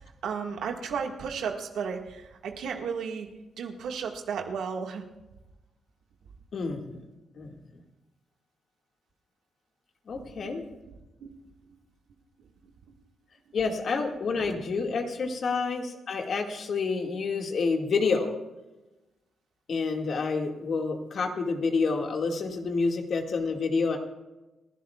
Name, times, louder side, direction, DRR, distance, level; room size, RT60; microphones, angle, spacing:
voice 1, 0.2-3.3 3.6-5.0 10.1-10.2 11.2-11.3, right 6 dB, 85° right, 2 dB, 1.8 m, -33 dB
voice 2, 6.5-7.0 7.4-7.6 10.1-10.7 13.5-18.3 19.7-24.0, left 4 dB, 60° left, 3 dB, 2.0 m, -28 dB
29.5 x 11.5 x 2.4 m, 1.1 s
cardioid pair, 75°, 0 cm